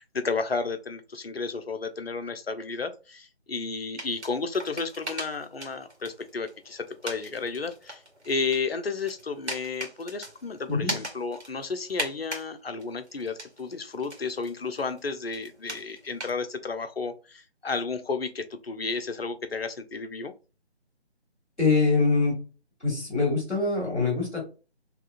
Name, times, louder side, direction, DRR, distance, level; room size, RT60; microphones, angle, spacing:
voice 1, 0.0-20.3, left 4 dB, 60° left, 9 dB, 0.6 m, -32 dB
sound 1, 4.0-12.5 12.8-16.3, right 1 dB, 80° right, 1.6 m, -40 dB
voice 2, 10.7-11.0 21.6-22.4 22.8-24.4, left 3 dB, ahead, -20 dB, 0.9 m, -24 dB
3.6 x 2.9 x 2.5 m, 0.33 s
figure-of-eight pair, 155°, 33 cm